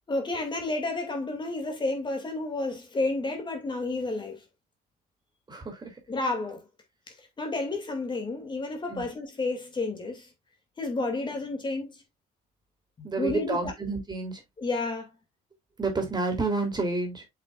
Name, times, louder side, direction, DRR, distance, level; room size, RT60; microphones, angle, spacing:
voice 1, 0.1-4.4 6.1-6.6 7.4-10.3 10.8-12.0 13.0-13.7 14.6-15.1, left 2 dB, 25° left, 2.5 m, -31 dB
voice 2, 5.5-6.0 8.9-9.1 13.0-14.4 15.8-17.2, right 3 dB, 25° right, 3.2 m, -30 dB
7.6 x 5.8 x 2.5 m
cardioid pair, 110°, 17 cm